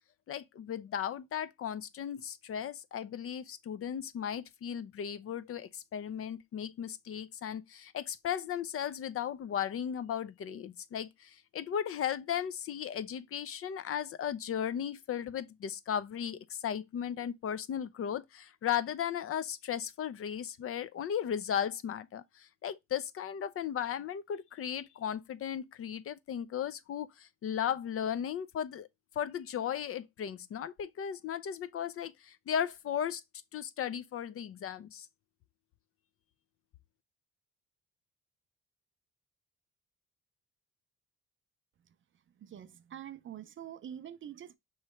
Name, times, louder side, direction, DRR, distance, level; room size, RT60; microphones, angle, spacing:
voice 1, 0.3-28.9 29.2-33.2 33.5-35.1, left 9 dB, 50° left, 0.4 m, -36 dB
voice 2, 42.4-44.6, right 10 dB, 45° right, 0.4 m, -45 dB
4.6 x 3.1 x 3.0 m
cardioid pair, 90°, 30 cm